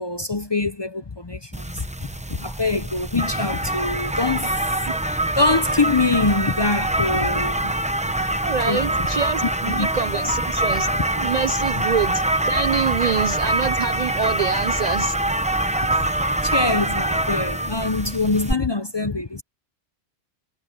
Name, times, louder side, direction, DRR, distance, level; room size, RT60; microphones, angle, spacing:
voice 1, 0.0-1.8 2.3-4.6 5.4-7.8 8.7-9.1 9.4-10.3 15.7-16.1 16.4-19.4, left 3 dB, 30° left, 0.6 m, -24 dB
sound 1, 1.5-18.5, right 1 dB, 10° right, 0.7 m, -24 dB
voice 2, 8.4-10.9 11.2-15.2, right 6 dB, 55° right, 0.5 m, -26 dB
omnidirectional pair, 1.1 m